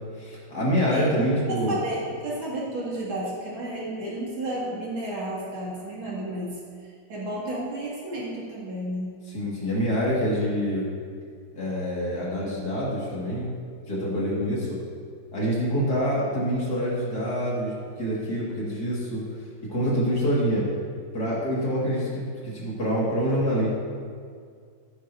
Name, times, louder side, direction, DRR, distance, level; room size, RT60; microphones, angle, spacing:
voice 1, 0.0-1.8 9.3-10.9 11.5-13.5 13.9-14.8 15.3-19.2 19.7-20.7 21.1-23.7, equal, 50° left, -6 dB, 2.6 m, -26 dB
voice 2, 0.9-9.1, right 1 dB, 65° right, -6 dB, 3.1 m, -32 dB
15.0 x 9.2 x 2.7 m, 2.1 s
omnidirectional pair, 2.3 m